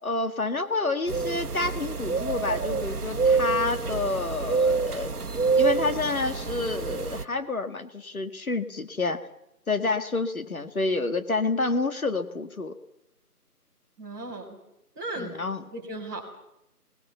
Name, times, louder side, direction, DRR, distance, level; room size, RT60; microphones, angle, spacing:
voice 1, 0.0-5.1 5.6-9.2 9.7-12.8 15.2-15.6, left 3 dB, 60° left, 8 dB, 2.0 m, -28 dB
sound 1, 1.1-7.2, right 4 dB, 70° right, 1.4 m, -27 dB
voice 2, 14.0-14.6 15.0-15.3 15.6-16.2, right 2 dB, 10° right, -7 dB, 3.9 m, -36 dB
27.0 x 20.5 x 7.1 m, 0.86 s
figure-of-eight pair, 175°, 47 cm